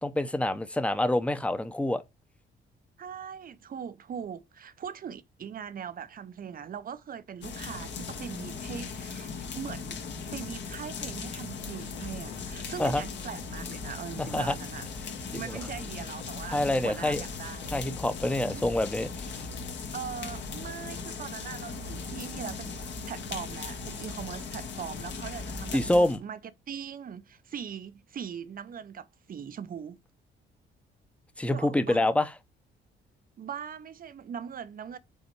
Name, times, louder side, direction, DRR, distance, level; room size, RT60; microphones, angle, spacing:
voice 1, 0.0-2.0 12.8-13.0 14.2-14.5 15.3-15.4 16.5-17.2 17.7-19.4 25.7-26.2 31.4-32.3, left 1 dB, 5° left, 0.8 m, -26 dB
voice 2, 3.0-10.0 10.3-14.9 15.3-17.8 18.4-18.6 19.3-19.4 19.9-26.4 26.7-30.0 31.5-32.1 33.4-35.0, right 8 dB, 45° right, 0.7 m, -40 dB
sound 1, 7.4-26.2, left 5 dB, 65° left, 1.5 m, -38 dB
sound 2, 11.6-19.7, left 3 dB, 90° left, 2.2 m, -47 dB
5.5 x 4.0 x 4.6 m
cardioid pair, 90°, 20 cm